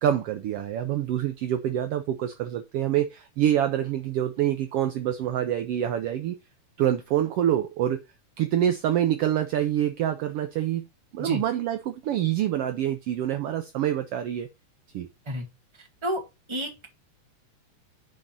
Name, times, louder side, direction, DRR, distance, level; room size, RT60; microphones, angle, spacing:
voice 1, 0.0-6.3 6.8-8.0 8.4-10.8 11.1-14.5 14.9-15.1, right 11 dB, 80° right, 1.3 m, -26 dB
voice 2, 16.5-16.9, equal, 10° right, 1.5 m, -30 dB
7.6 x 3.9 x 6.0 m
omnidirectional pair, 3.5 m